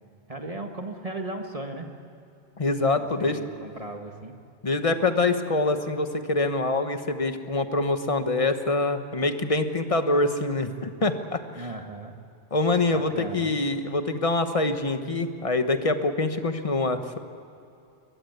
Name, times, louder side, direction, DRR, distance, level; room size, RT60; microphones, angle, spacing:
voice 1, 0.3-1.9 3.0-4.3 11.6-12.1 12.8-13.6, right 2 dB, 30° right, 3 dB, 1.8 m, -36 dB
voice 2, 2.6-3.4 4.6-11.6 12.5-17.2, left 2 dB, 30° left, 8 dB, 1.3 m, -25 dB
22.0 x 21.5 x 8.1 m, 2.6 s
omnidirectional pair, 1.1 m